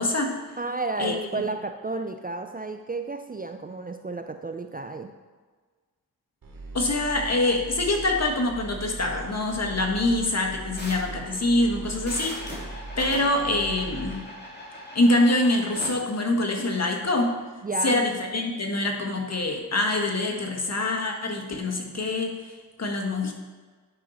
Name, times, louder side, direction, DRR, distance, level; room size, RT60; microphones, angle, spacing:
voice 1, 0.0-0.4 1.0-1.4 6.7-14.3 14.9-17.3 17.8-22.5 22.8-23.3, left 2 dB, 40° left, 2 dB, 1.6 m, -25 dB
voice 2, 0.6-5.1 17.6-18.0, right 3 dB, 25° right, 7 dB, 0.5 m, -32 dB
sound 1, 6.4-14.2, right 2 dB, 60° right, 2.0 m, -39 dB
sound 2, 10.8-15.9, left 1 dB, 25° left, 2.8 m, -40 dB
10.0 x 5.4 x 4.1 m, 1.4 s
cardioid pair, 55°, 39 cm